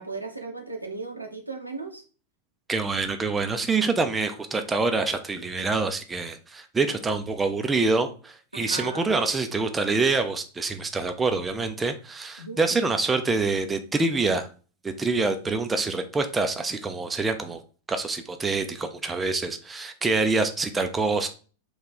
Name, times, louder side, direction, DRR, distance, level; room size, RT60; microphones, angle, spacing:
voice 1, 0.0-2.0 8.5-9.1 12.4-12.7, right 3 dB, 85° right, 2 dB, 0.6 m, -36 dB
voice 2, 2.7-14.5 14.8-17.6 17.9-21.3, right 3 dB, 15° right, 7 dB, 0.4 m, -26 dB
3.1 x 2.2 x 4.1 m, 0.38 s
figure-of-eight pair, 90°, 0 cm